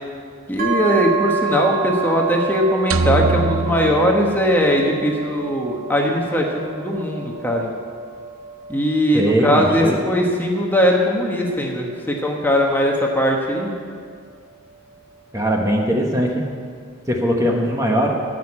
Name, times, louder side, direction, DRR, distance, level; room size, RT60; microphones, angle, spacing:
voice 1, 0.5-7.7 8.7-13.7, equal, 10° left, 0 dB, 1.1 m, -20 dB
sound 1, 0.6-14.3, right 6 dB, 45° right, 2.2 m, -30 dB
sound 2, 2.9-5.2, right 3 dB, 85° right, 0.6 m, -24 dB
voice 2, 9.1-10.0 15.3-16.4 17.1-18.1, equal, 15° right, 0 dB, 1.1 m, -20 dB
14.0 x 6.5 x 8.7 m, 2.1 s
head